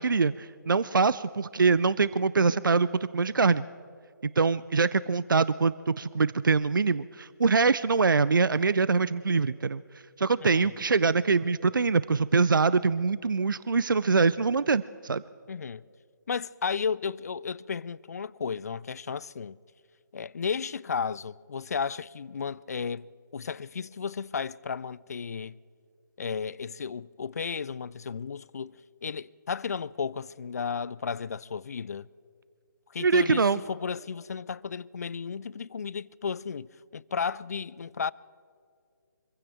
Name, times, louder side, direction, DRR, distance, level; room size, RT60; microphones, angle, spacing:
voice 1, 0.0-3.6 4.4-9.8 10.2-15.2 33.0-33.6, right 4 dB, 75° right, 0.4 m, -24 dB
voice 2, 10.4-10.7 15.5-15.8 16.3-19.6 20.1-25.6 26.2-32.1 32.9-38.1, left 6 dB, 50° left, 0.3 m, -34 dB
25.5 x 15.5 x 3.5 m
figure-of-eight pair, 145°, 11 cm